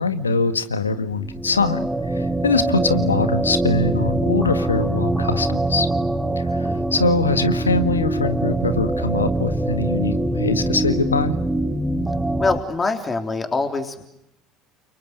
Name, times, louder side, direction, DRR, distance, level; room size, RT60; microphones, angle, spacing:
voice 1, 0.0-5.9 6.4-11.4, left 3 dB, 85° left, 10 dB, 1.8 m, -23 dB
sound 1, 1.1-12.6, right 2 dB, 10° right, 2.0 m, -23 dB
voice 2, 12.4-14.0, left 3 dB, 25° left, 5 dB, 3.6 m, -24 dB
30.0 x 29.5 x 6.7 m, 0.81 s
figure-of-eight pair, 65°, 0 cm